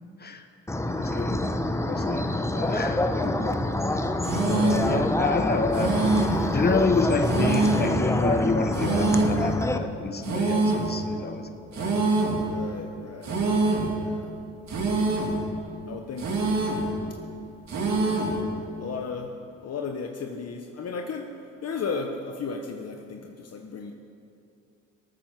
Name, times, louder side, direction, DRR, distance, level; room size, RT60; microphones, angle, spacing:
sound 1, 0.7-9.8, left 1 dB, 10° left, 1.0 m, -27 dB
voice 1, 0.9-1.5 1.9-3.6 4.4-6.0 6.5-11.5 11.8-12.0, left 3 dB, 30° left, 6 dB, 1.5 m, -28 dB
sound 2, 4.2-4.9 5.7-6.5 7.2-8.0 8.7-9.4 10.2-10.9 11.7-12.4 13.2-13.9 14.7-15.4 16.2-16.9 17.7-18.4, right 3 dB, 55° right, 2.9 m, -24 dB
voice 2, 12.4-13.4 14.0-14.3 15.9-16.3 17.9-18.3 18.8-19.3 19.6-21.3 21.6-23.9, left 5 dB, 50° left, 4 dB, 1.1 m, -34 dB
19.0 x 8.8 x 6.1 m, 2.6 s
supercardioid pair, 60°, 33 cm